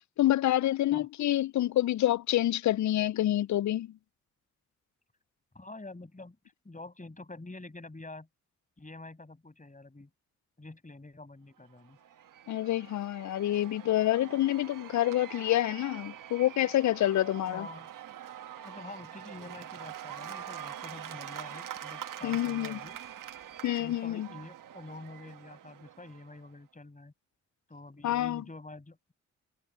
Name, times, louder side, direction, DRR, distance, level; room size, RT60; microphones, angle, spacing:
voice 1, 0.2-3.9 12.5-17.7 22.2-22.8 23.6-24.3 28.0-28.4, left 13 dB, 65° left, 0.5 m, -27 dB
voice 2, 5.5-6.4 6.6-8.3 8.8-10.1 10.6-12.0 17.5-17.9 18.6-23.0 23.8-27.1 27.7-29.1, left 2 dB, 25° left, 6.5 m, -47 dB
Cheering / Applause / Crowd, 11.7-26.5, right 10 dB, 85° right, 1.4 m, -45 dB
supercardioid pair, 50°, 31 cm